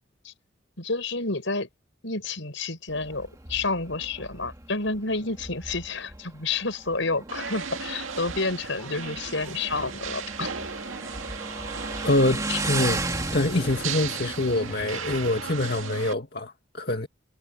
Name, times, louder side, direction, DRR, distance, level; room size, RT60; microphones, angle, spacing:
voice 1, 0.8-1.7 2.0-10.5 12.5-12.6, left 3 dB, 70° left, 5.4 m, -30 dB
Motorcycle, 2.9-15.8, right 2 dB, 15° right, 2.1 m, -36 dB
sound 1, 7.3-16.1, right 6 dB, 85° right, 2.1 m, -36 dB
voice 2, 12.0-13.0 13.3-17.1, left 2 dB, 55° left, 2.1 m, -25 dB
head